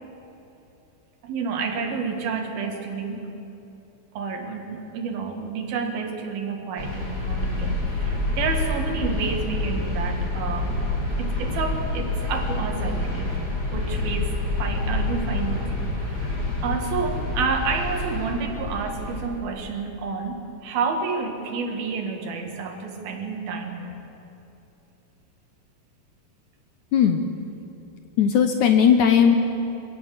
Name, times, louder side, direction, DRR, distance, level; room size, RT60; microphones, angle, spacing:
voice 1, 1.2-3.3 4.1-10.8 11.2-13.4 13.7-24.0, right 5 dB, 75° right, 4 dB, 3.7 m, -30 dB
sound 1, 6.8-19.3, left 2 dB, 35° left, 5.6 m, -27 dB
voice 2, 26.9-27.3 28.2-29.4, left 8 dB, 65° left, 6 dB, 2.1 m, -17 dB
25.0 x 18.0 x 7.6 m, 2.9 s
omnidirectional pair, 4.3 m